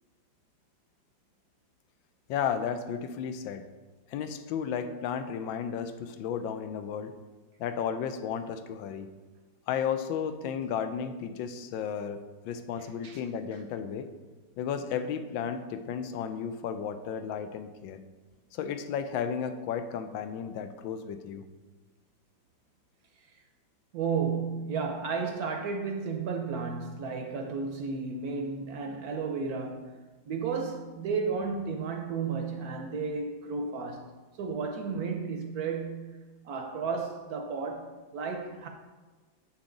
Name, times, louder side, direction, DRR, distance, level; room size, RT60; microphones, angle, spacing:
voice 1, 2.3-3.6 4.1-7.1 7.6-9.1 9.7-14.1 14.6-18.0 18.5-21.4, left 7 dB, 90° left, 1.4 m, -33 dB
voice 2, 23.9-30.0 30.3-36.2 36.4-38.7, right 5 dB, 65° right, 1.0 m, -33 dB
7.3 x 5.9 x 3.8 m
omnidirectional pair, 2.1 m